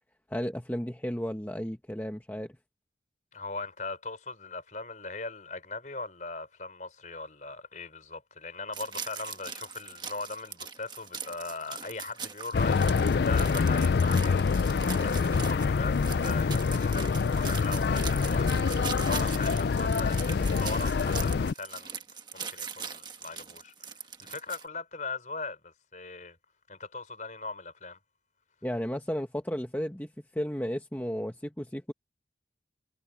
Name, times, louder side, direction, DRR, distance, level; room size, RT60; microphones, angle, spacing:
voice 1, 0.3-2.5 28.6-31.9, equal, 10° left, 1.0 m, -33 dB
voice 2, 3.3-16.0 16.2-22.0 22.3-26.4 26.7-28.0, left 3 dB, 45° left, 4.3 m, -39 dB
sound 1, 8.7-24.6, right 6 dB, 25° right, 1.4 m, -41 dB
sound 2, 12.5-21.5, left 5 dB, 65° left, 0.4 m, -26 dB
head